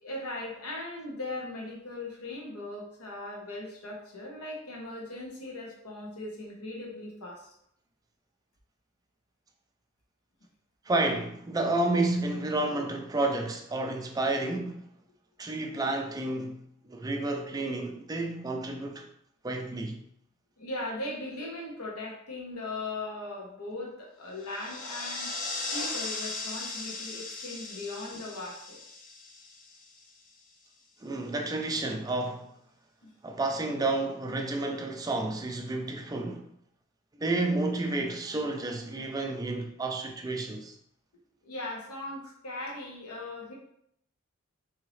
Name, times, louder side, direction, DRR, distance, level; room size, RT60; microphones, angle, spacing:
voice 1, 0.0-7.5 20.6-25.3 25.7-28.8 33.0-33.1 41.4-43.5, left 2 dB, 90° left, 1.0 m, -39 dB
voice 2, 10.9-14.9 15.4-19.1 19.4-20.0 31.0-32.5 33.2-36.5 37.2-40.8, right 2 dB, 15° right, 0.3 m, -30 dB
sound 1, 24.4-30.2, left 3 dB, 35° left, 0.5 m, -38 dB
3.8 x 2.8 x 3.1 m
head